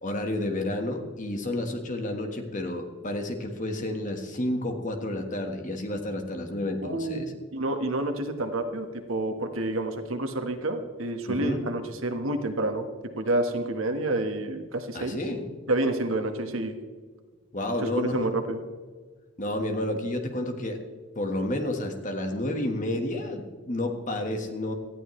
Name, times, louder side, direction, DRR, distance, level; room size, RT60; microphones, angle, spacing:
voice 1, 0.0-7.3 11.3-11.6 14.9-15.4 17.5-18.3 19.4-20.8 21.1-24.7, left 1 dB, 35° left, 4 dB, 1.5 m, -30 dB
voice 2, 6.8-12.9 13.2-15.2 15.7-16.7 17.9-18.6, right 2 dB, 75° right, 6 dB, 1.4 m, -29 dB
18.5 x 13.5 x 3.2 m, 1.4 s
head